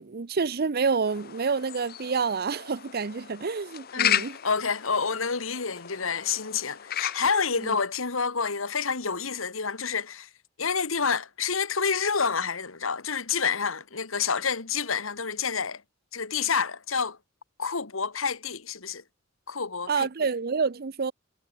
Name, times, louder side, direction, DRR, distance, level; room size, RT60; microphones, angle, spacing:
voice 1, 0.0-4.4 7.6-7.8 19.9-21.1, right 5 dB, 50° right, 0.7 m, -28 dB
sound 1, 1.1-7.8, left 10 dB, 50° left, 0.9 m, -34 dB
voice 2, 3.9-10.3 10.6-15.8 16.1-17.2 17.6-19.0 19.5-20.1, left 5 dB, 80° left, 1.9 m, -28 dB
head